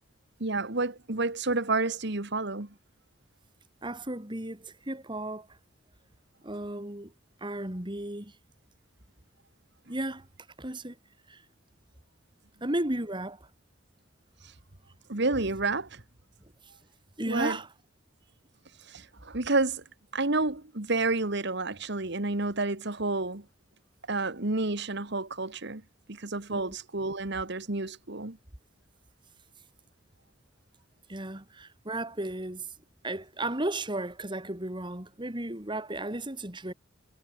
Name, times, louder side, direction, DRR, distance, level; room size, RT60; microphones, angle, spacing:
voice 1, 0.4-2.7 14.4-14.5 15.1-16.0 17.3-17.6 18.8-19.8 20.1-23.4 24.1-25.8 26.1-28.4, right 3 dB, 55° right, 1.8 m, -30 dB
voice 2, 3.8-5.5 6.4-7.1 7.4-8.3 9.9-10.3 10.6-10.9 11.3-11.4 12.6-13.4 17.2-17.7 26.5-26.7 31.1-32.7 33.0-36.7, right 1 dB, 25° right, 2.6 m, -34 dB
head